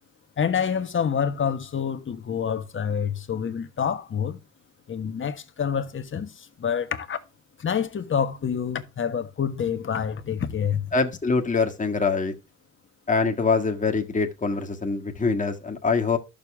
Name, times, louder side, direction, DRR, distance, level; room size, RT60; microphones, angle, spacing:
voice 1, 0.4-4.4 4.9-7.2 7.6-10.9, left 7 dB, 40° left, 1.4 m, -27 dB
voice 2, 10.9-12.3 13.1-16.2, left 4 dB, 25° left, 1.8 m, -24 dB
12.0 x 6.9 x 3.5 m
cardioid pair, 90°, 30 cm